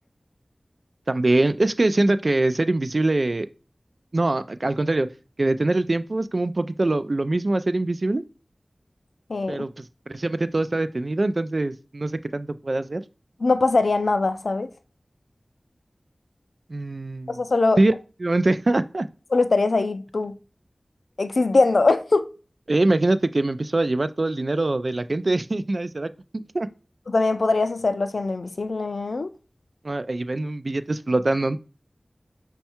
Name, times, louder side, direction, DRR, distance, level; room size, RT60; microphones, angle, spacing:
voice 1, 1.1-3.5 4.1-5.1 5.4-8.2 9.5-9.8 10.1-13.0 16.7-17.4 17.8-17.9 18.2-19.1 22.7-26.7 29.8-31.6, right 2 dB, 55° right, 0.3 m, -23 dB
voice 2, 9.3-9.6 13.4-14.7 17.3-17.8 19.3-20.3 21.2-22.3 27.1-29.3, left 3 dB, 80° left, 0.4 m, -22 dB
5.4 x 2.2 x 4.3 m
wide cardioid pair, 65°, 0 cm